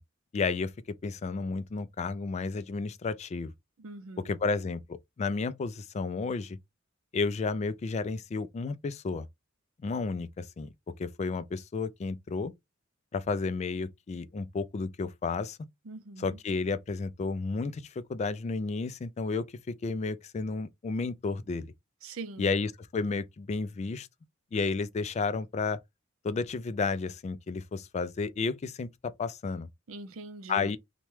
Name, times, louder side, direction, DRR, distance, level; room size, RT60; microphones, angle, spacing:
voice 1, 0.3-0.7 1.0-3.5 4.2-6.6 7.1-9.3 9.8-10.7 11.0-12.5 13.1-15.6 16.2-21.7 22.4-24.1 24.5-25.8 26.2-29.7 30.5-30.8, left 4 dB, 35° left, 0.3 m, -32 dB
voice 2, 3.8-4.4 15.9-16.4 22.0-22.5 29.9-30.7, right 3 dB, 80° right, 0.5 m, -43 dB
2.9 x 2.2 x 3.1 m
head